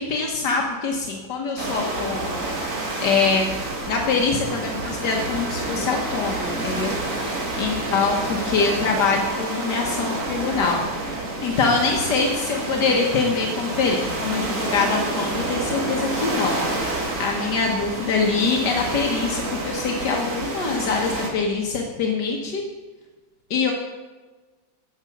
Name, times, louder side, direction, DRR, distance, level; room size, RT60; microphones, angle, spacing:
voice 1, 0.0-2.7 3.0-3.5 3.9-7.0 7.6-10.8 11.4-22.6 23.5-23.7, left 4 dB, 80° left, 1 dB, 1.7 m, -24 dB
sound 1, 1.6-21.3, right 2 dB, 50° right, 2.1 m, -28 dB
9.5 x 6.9 x 7.1 m, 1.3 s
omnidirectional pair, 1.8 m